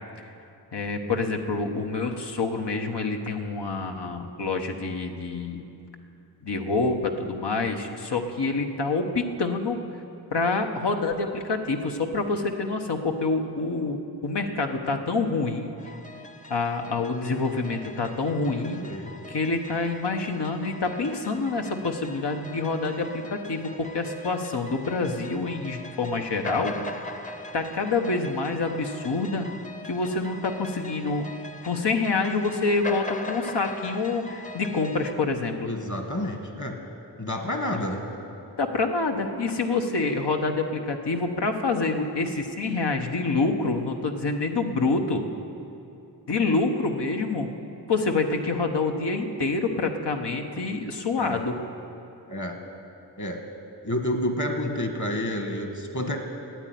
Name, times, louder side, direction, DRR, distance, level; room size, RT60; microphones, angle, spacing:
voice 1, 0.7-5.6 6.4-9.8 10.3-15.7 16.5-18.8 19.3-26.8 27.5-29.5 29.9-31.3 31.6-35.7 38.6-45.2 46.3-47.5 47.9-51.5, left 3 dB, 75° left, 4 dB, 1.2 m, -27 dB
sound 1, 15.8-35.1, left 2 dB, 20° left, 0.8 m, -41 dB
voice 2, 18.6-19.1 35.6-36.8 37.2-38.0 51.2-51.4 52.3-52.6 53.2-53.4 53.8-56.2, left 1 dB, 45° left, 4 dB, 1.8 m, -29 dB
13.0 x 9.2 x 9.3 m, 2.7 s
wide cardioid pair, 65°, 41 cm